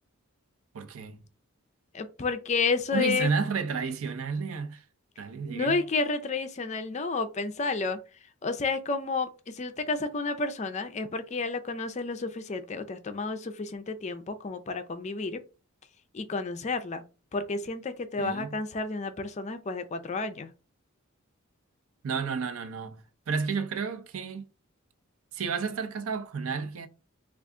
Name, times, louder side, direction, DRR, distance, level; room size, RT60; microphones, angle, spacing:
voice 1, 0.7-1.2 2.9-4.8 5.2-5.8 18.2-18.6 22.0-23.0 23.3-24.5 25.3-26.9, right 5 dB, 70° right, 0.5 m, -31 dB
voice 2, 1.9-3.3 5.5-8.0 8.4-15.4 16.1-17.0 17.3-20.5, left 4 dB, 30° left, 0.4 m, -31 dB
3.4 x 2.4 x 3.6 m
head